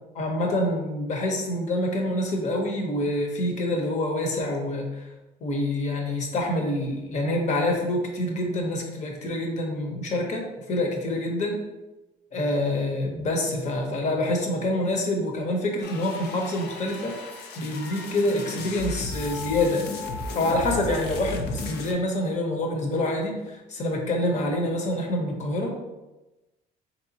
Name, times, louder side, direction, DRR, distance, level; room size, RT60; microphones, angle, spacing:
voice 1, 0.1-5.1 5.4-11.6 12.3-17.1 17.6-19.9 20.3-25.7, left 1 dB, 45° left, 1 dB, 0.9 m, -26 dB
sound 1, 15.8-21.9, left 3 dB, 75° left, 0.6 m, -35 dB
4.2 x 3.3 x 2.8 m, 1.0 s
cardioid pair, 110°, 17 cm